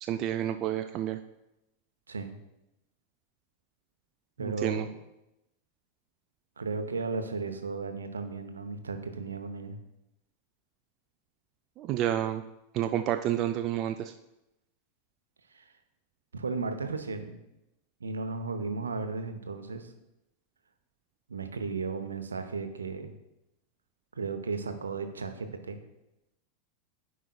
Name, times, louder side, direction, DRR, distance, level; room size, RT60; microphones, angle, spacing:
voice 1, 0.0-1.2 4.4-4.9 11.8-12.4 12.7-14.1, right 11 dB, 35° right, 7 dB, 0.3 m, -30 dB
voice 2, 2.1-2.4 4.4-4.9 6.6-9.8 15.5-15.7 16.3-17.4 18.0-19.9 21.3-23.1 24.1-25.8, right 4 dB, 75° right, 7 dB, 0.7 m, -35 dB
13.5 x 5.1 x 2.2 m, 0.90 s
figure-of-eight pair, 90°, 0 cm